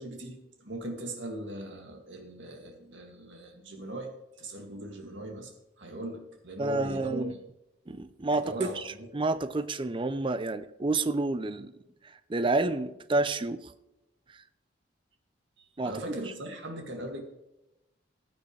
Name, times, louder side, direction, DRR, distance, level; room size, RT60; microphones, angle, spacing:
voice 1, 0.0-7.3 8.3-9.1 15.8-17.2, right 1 dB, 70° right, 3 dB, 2.2 m, -40 dB
voice 2, 6.6-7.3 7.9-11.7 12.3-13.7 15.8-16.2, right 2 dB, 25° right, 12 dB, 0.5 m, -29 dB
15.0 x 9.3 x 3.3 m, 0.91 s
head